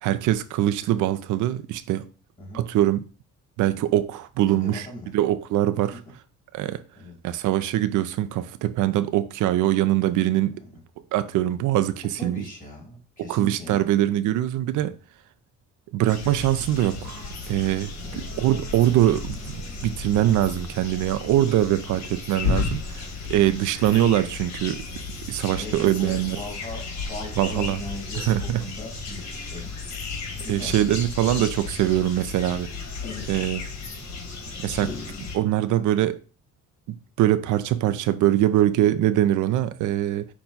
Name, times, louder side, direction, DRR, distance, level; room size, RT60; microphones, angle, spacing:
voice 1, 0.0-2.0 2.5-3.0 3.6-4.9 5.1-6.0 6.5-6.8 7.2-10.6 11.1-12.4 13.2-14.9 15.9-24.8 25.3-26.4 27.4-27.8 28.1-28.6 30.5-32.7 33.3-33.6 34.6-36.2 36.9-40.3, right 13 dB, 80° right, 0.4 m, -23 dB
voice 2, 4.5-5.1 5.9-6.0 7.0-7.2 12.2-13.9 14.7-14.8 18.0-18.3 21.5-21.8 23.7-23.9 25.5-29.7 30.4-30.7, left 2 dB, 25° left, 2.3 m, -39 dB
sound 1, 16.1-35.4, left 4 dB, 65° left, 1.5 m, -34 dB
5.9 x 2.2 x 3.9 m
cardioid pair, 90°, 30 cm